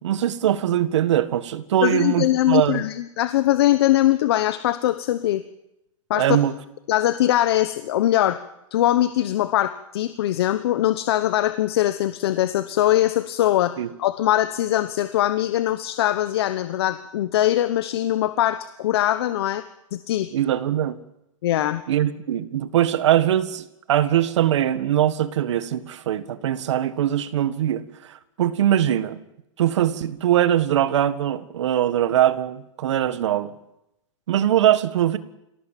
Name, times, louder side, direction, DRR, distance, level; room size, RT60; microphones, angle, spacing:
voice 1, 0.0-2.8 6.1-6.5 13.8-13.9 20.3-21.0 21.9-27.8 28.1-29.2 29.6-33.5 34.3-35.2, right 11 dB, 60° right, 13 dB, 1.7 m, -21 dB
voice 2, 1.8-5.4 6.1-6.4 6.9-8.4 8.7-19.6 19.9-20.3 21.4-21.8, left 13 dB, 50° left, 12 dB, 1.0 m, -21 dB
27.0 x 17.5 x 7.5 m, 0.88 s
hypercardioid pair, 165°, 17 cm